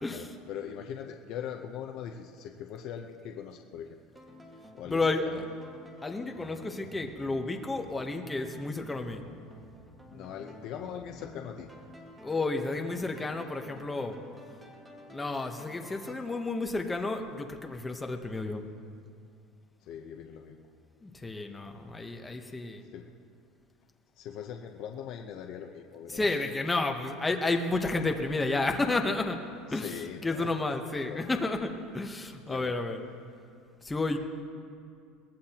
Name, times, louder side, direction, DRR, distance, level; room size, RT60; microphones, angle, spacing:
voice 1, 0.1-3.9 4.7-5.4 10.1-11.7 19.8-20.7 22.9-23.1 24.2-26.4 29.7-30.5 31.0-31.5 32.5-32.7, left 8 dB, 50° left, 2 dB, 0.8 m, -41 dB
sound 1, 4.1-16.1, equal, 10° right, 1.8 m, -51 dB
voice 2, 4.8-5.2 6.0-9.2 12.2-14.2 15.1-18.6 21.0-22.8 26.1-29.4 29.7-29.9 30.2-33.0 33.8-34.2, left 3 dB, 10° left, 4 dB, 0.9 m, -31 dB
22.5 x 18.0 x 3.0 m, 2.3 s
cardioid pair, 160°, 0 cm